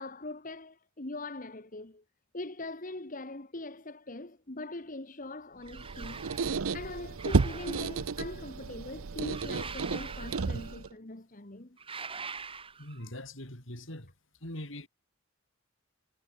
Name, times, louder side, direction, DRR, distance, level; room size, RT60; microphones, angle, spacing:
voice 1, 0.0-2.0 2.3-11.8, left 2 dB, 40° left, 1.5 m, -42 dB
sound 1, 5.6-6.6 7.2-8.2 9.3-10.9 11.8-13.0, right 5 dB, 25° right, 4.2 m, -44 dB
Squeak, 5.7-10.9, right 4 dB, 80° right, 0.7 m, -32 dB
voice 2, 12.8-14.1 14.4-14.9, left 1 dB, 65° left, 6.7 m, -42 dB
head